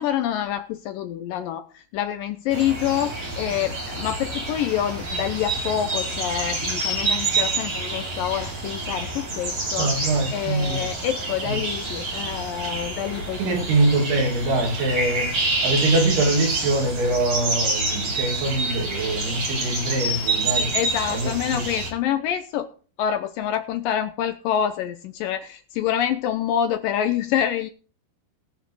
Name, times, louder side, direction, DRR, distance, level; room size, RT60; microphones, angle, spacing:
voice 1, 0.0-13.8 20.7-22.7 23.0-27.7, left 10 dB, 75° left, 2.2 m, -27 dB
sound 1, 2.5-21.9, right 2 dB, 40° right, 4.6 m, -28 dB
voice 2, 9.8-10.9 11.4-11.6 13.4-15.3 15.6-20.7 21.1-21.6, right 2 dB, 85° right, 5.0 m, -23 dB
19.5 x 6.5 x 4.8 m
omnidirectional pair, 4.4 m